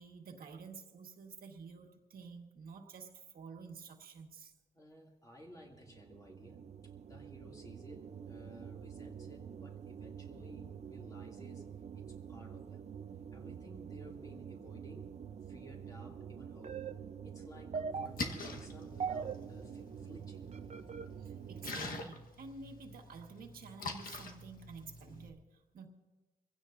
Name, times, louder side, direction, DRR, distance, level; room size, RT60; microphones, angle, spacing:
voice 1, 0.0-4.5 21.2-25.9, right 5 dB, 85° right, 2 dB, 1.6 m, -50 dB
voice 2, 4.7-6.6 7.0-12.8 13.3-15.1 15.5-16.9 17.2-20.4, left 1 dB, 25° left, -1 dB, 2.6 m, -56 dB
sound 1, 5.5-22.0, right 7 dB, 50° right, 0.7 m, -45 dB
Splash splatter, 17.9-25.3, left 3 dB, 75° left, 1.3 m, -46 dB
25.5 x 16.0 x 2.6 m, 1.2 s
wide cardioid pair, 155°, 15 cm